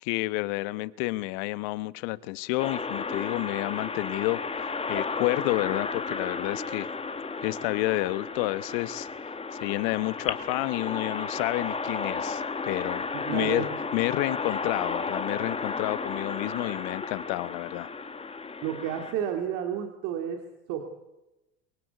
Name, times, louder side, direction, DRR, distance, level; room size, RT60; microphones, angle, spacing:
voice 1, 0.0-6.9 7.4-9.1 9.6-13.6 13.9-17.9, left 20 dB, 65° left, 17 dB, 1.1 m, -30 dB
sound 1, 2.6-19.1, left 4 dB, 15° left, 1.9 m, -33 dB
voice 2, 13.1-13.7 18.6-20.8, right 9 dB, 65° right, 4 dB, 2.9 m, -31 dB
23.0 x 23.0 x 8.3 m, 0.96 s
hypercardioid pair, 80°, 34 cm